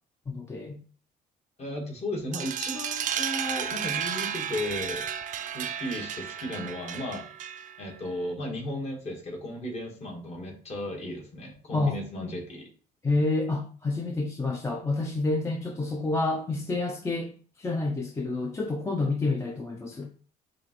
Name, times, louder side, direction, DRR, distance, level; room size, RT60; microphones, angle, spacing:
voice 1, 0.3-0.8 11.7-12.0 12.2-12.3 13.0-17.3 17.6-20.1, left 2 dB, 15° left, 0.4 m, -28 dB
voice 2, 1.6-5.1 5.5-7.3 7.8-12.7, left 1 dB, 40° left, 1.3 m, -35 dB
sound 1, 2.3-7.9, right 8 dB, 50° right, 0.4 m, -33 dB
4.8 x 2.5 x 2.9 m
cardioid pair, 110°, 17 cm